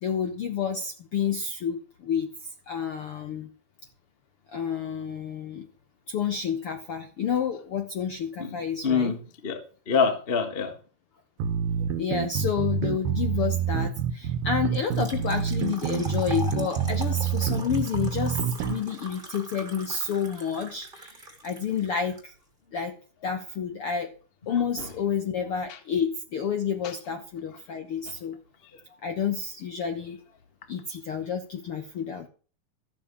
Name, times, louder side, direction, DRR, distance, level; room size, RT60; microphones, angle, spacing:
voice 1, 0.0-2.3 2.7-3.5 4.5-5.7 6.1-9.2 12.0-22.3 22.7-23.0 23.2-24.1 24.5-28.4 29.0-30.2 30.7-32.3, left 7 dB, 65° left, 7 dB, 1.3 m, -30 dB
voice 2, 8.8-9.1 9.4-10.7, left 5 dB, 45° left, 7 dB, 0.7 m, -25 dB
sound 1, 11.4-18.8, right 7 dB, 80° right, 2.8 m, -27 dB
Trickle dribble / Fill (with liquid), 14.7-22.2, right 2 dB, 15° right, 2.1 m, -42 dB
13.5 x 7.3 x 7.0 m, 0.39 s
omnidirectional pair, 4.1 m